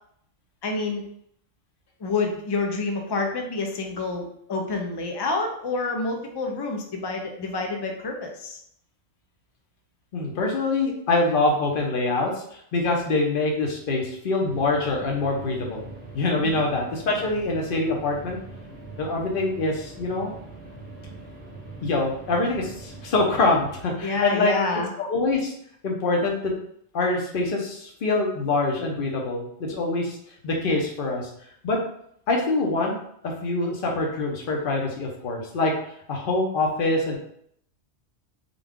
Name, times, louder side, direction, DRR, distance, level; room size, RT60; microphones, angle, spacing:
voice 1, 0.6-1.0 2.0-8.6 16.4-16.6 24.0-24.9, left 3 dB, 35° left, 2 dB, 0.4 m, -28 dB
voice 2, 10.1-15.9 16.1-18.4 19.0-20.3 21.8-24.5 25.0-25.5 25.8-26.5 26.9-30.2 30.4-31.3 31.6-31.8 32.3-32.9 33.2-35.7 36.1-37.2, left 2 dB, 55° left, 0 dB, 0.9 m, -24 dB
sound 1, 14.4-23.8, right 2 dB, 40° right, 0.8 m, -42 dB
3.8 x 2.3 x 3.5 m, 0.70 s
omnidirectional pair, 1.2 m